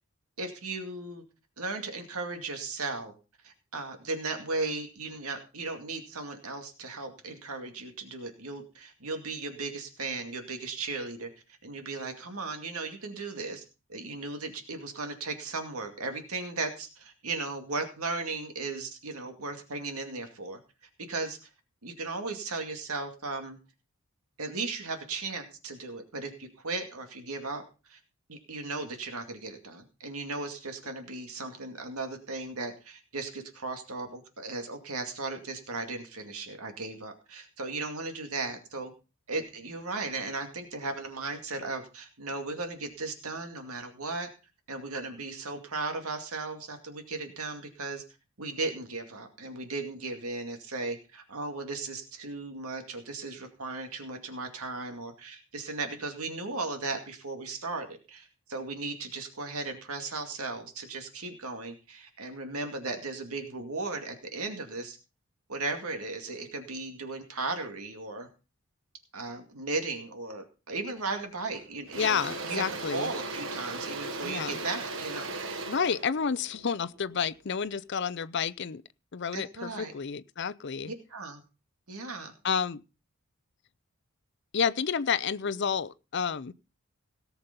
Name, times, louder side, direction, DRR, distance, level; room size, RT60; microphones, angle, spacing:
voice 1, 0.4-1.2 1.6-3.1 3.4-11.3 11.6-13.6 13.9-20.6 21.1-21.4 21.8-23.6 24.4-27.6 27.9-28.0 28.3-38.9 39.3-44.3 44.7-48.0 48.4-65.0 65.5-68.3 69.1-72.2 72.5-72.6 72.9-75.3 79.3-79.9 80.9-81.4 81.9-82.3, right 3 dB, 75° right, 2.3 m, -36 dB
Engine / Drill, 71.0-71.2 71.5-77.7, right 3 dB, 55° right, 1.4 m, -38 dB
voice 2, 72.0-73.1 74.2-74.5 75.6-78.8 79.1-80.9 82.4-82.8 84.5-86.5, left 6 dB, 50° left, 0.5 m, -30 dB
17.5 x 7.2 x 5.3 m
head